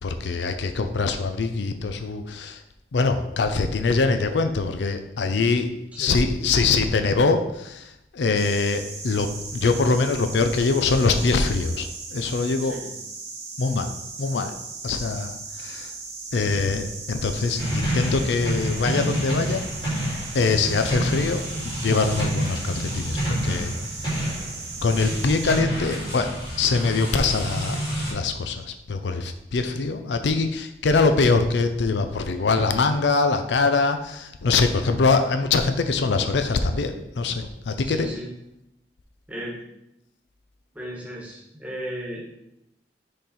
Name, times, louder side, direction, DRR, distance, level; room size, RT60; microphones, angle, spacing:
voice 1, 0.0-2.6 2.9-5.7 6.0-12.8 13.6-13.9 14.2-14.5 14.8-15.9 16.3-19.9 20.3-23.7 24.8-27.8 28.1-38.1, left 4 dB, 80° left, 8 dB, 0.5 m, -23 dB
sound 1, 8.3-25.6, right 4 dB, 40° right, 1.0 m, -38 dB
voice 2, 12.6-12.9 37.8-38.3 39.3-39.6 40.7-42.2, equal, 10° right, -3 dB, 1.4 m, -35 dB
sound 2, 17.6-28.1, right 1 dB, 25° left, 2.2 m, -28 dB
6.4 x 4.0 x 4.2 m, 0.85 s
head